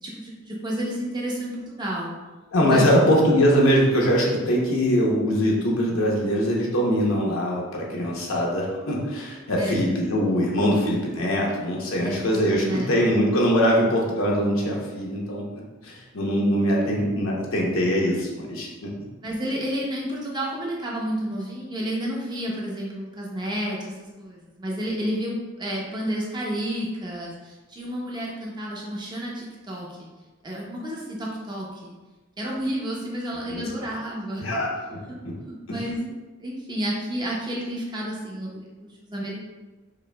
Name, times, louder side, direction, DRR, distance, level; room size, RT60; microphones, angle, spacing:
voice 1, 0.0-2.1 2.7-3.0 9.6-9.8 12.0-12.4 12.6-12.9 16.4-16.5 19.2-23.9 24.2-30.1 30.4-31.9 32.4-34.4 35.1-35.2 35.6-36.1 36.4-39.4, equal, 20° right, -3 dB, 0.7 m, -31 dB
voice 2, 2.5-18.9 33.5-33.6 34.4-35.0 35.2-35.3 35.7-35.8, equal, 75° left, -3 dB, 0.8 m, -22 dB
4.9 x 2.6 x 2.2 m, 1.2 s
head